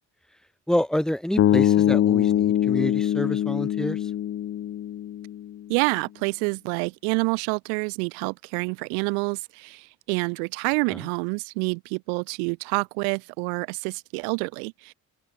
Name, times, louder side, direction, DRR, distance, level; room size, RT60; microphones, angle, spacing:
voice 1, 0.7-4.0 10.9-11.0, equal, ahead, 1.7 m, -28 dB
sound 1, 1.4-5.5, left 11 dB, 30° left, 0.4 m, -23 dB
voice 2, 5.7-14.9, right 40 dB or more, 85° right, 1.2 m, -27 dB
hypercardioid pair, 40°, 49 cm